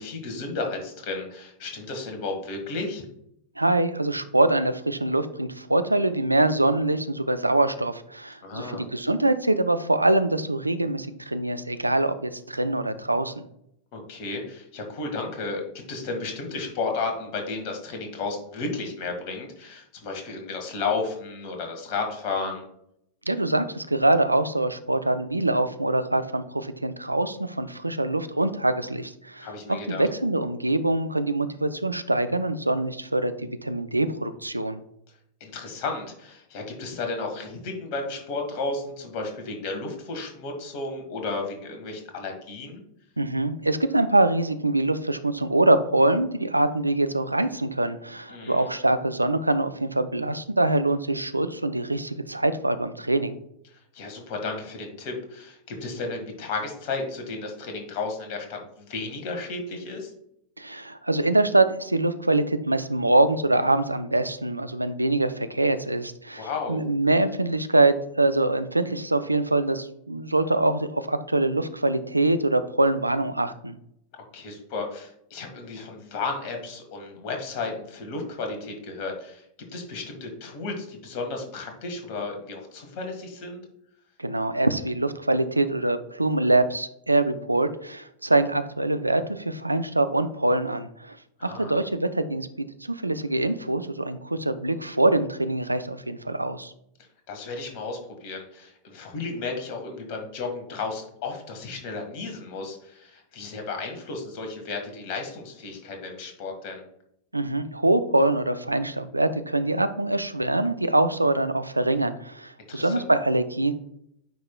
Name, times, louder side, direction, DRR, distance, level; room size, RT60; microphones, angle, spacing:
voice 1, 0.0-3.0 8.4-8.9 13.9-22.6 29.4-30.0 35.4-42.8 48.3-48.7 53.7-60.1 66.4-66.8 74.3-79.4 79.7-83.6 91.4-91.8 97.3-106.8 112.7-113.1, left 3 dB, 45° left, 3 dB, 1.6 m, -33 dB
voice 2, 3.6-13.4 23.3-34.8 43.2-53.4 60.6-73.8 84.2-91.2 91.4-92.5 92.8-96.7 107.3-113.7, right 2 dB, 85° right, 11 dB, 0.4 m, -24 dB
9.1 x 4.7 x 2.2 m, 0.73 s
figure-of-eight pair, 90°, 0 cm